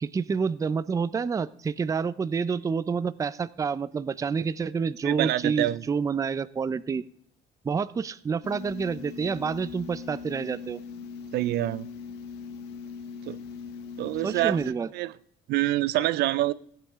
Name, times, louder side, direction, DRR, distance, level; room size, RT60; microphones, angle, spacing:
voice 1, 0.0-7.0 7.6-10.8 14.2-14.9, right 5 dB, 20° right, 0.4 m, -28 dB
voice 2, 5.0-5.8 11.3-11.9 13.3-13.4 14.0-14.6 14.9-15.1 15.5-16.5, right 15 dB, 75° right, 0.5 m, -26 dB
sound 1, 8.4-14.7, left 5 dB, 90° left, 1.1 m, -40 dB
15.0 x 8.8 x 3.5 m
cardioid pair, 110°, 17 cm